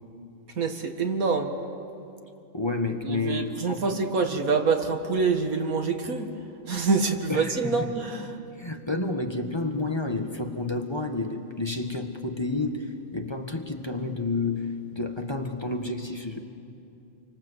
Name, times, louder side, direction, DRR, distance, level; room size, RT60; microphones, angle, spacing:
voice 1, 0.6-1.6 3.0-6.4 6.7-8.4, right 4 dB, 85° right, 5 dB, 2.3 m, -26 dB
voice 2, 2.5-4.0 7.3-7.9 8.6-16.4, left 2 dB, 20° left, 4 dB, 1.4 m, -30 dB
29.0 x 25.0 x 8.1 m, 2.6 s
omnidirectional pair, 1.4 m